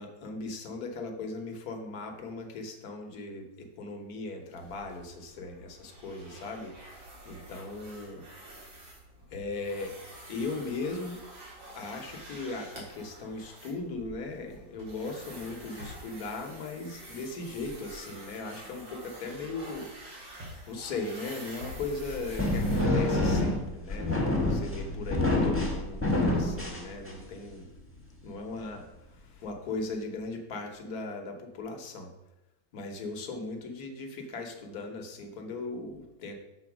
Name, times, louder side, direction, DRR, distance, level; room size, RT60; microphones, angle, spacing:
voice 1, 0.0-8.2 9.3-9.9 10.3-11.2 11.7-19.9 20.7-27.7 28.2-32.1 32.7-36.3, left 3 dB, 55° left, 4 dB, 1.3 m, -38 dB
sound 1, 4.6-23.3, right 1 dB, 75° right, 2.6 m, -48 dB
sound 2, 21.8-27.4, left 2 dB, 10° left, 1.1 m, -27 dB
7.0 x 4.2 x 6.0 m, 0.91 s
omnidirectional pair, 2.1 m